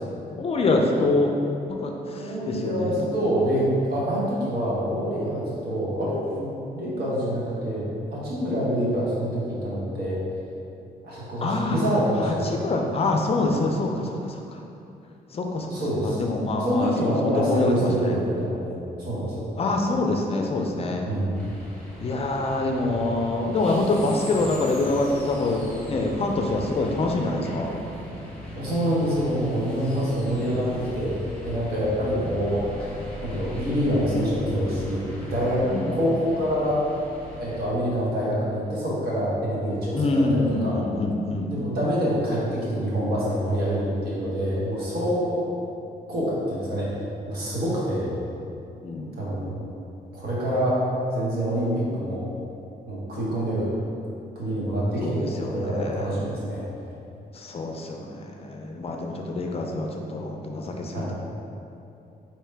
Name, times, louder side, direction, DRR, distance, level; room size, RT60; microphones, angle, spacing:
voice 1, 0.4-1.3 1.8-3.1 11.4-11.8 12.2-14.6 15.3-15.7 16.0-18.2 19.6-21.0 22.0-27.7 32.2-32.3 35.6-35.9 39.9-41.5 48.8-49.2 55.0-56.1 57.3-61.1, left 2 dB, 35° left, 2 dB, 0.4 m, -25 dB
voice 2, 2.1-10.2 11.0-12.4 15.7-16.2 16.6-19.4 21.1-21.3 28.5-31.2 31.4-32.7 33.2-35.7 35.9-36.8 37.4-40.8 41.5-45.4 46.1-46.9 47.3-48.1 49.1-49.6 50.1-50.8 51.1-52.2 52.9-53.7 54.3-56.7 60.9-61.1, equal, 70° right, -7 dB, 1.4 m, -26 dB
sound 1, 21.3-37.6, left 1 dB, 5° left, 1.0 m, -39 dB
4.7 x 3.0 x 3.3 m, 2.7 s
cardioid pair, 110°, 16 cm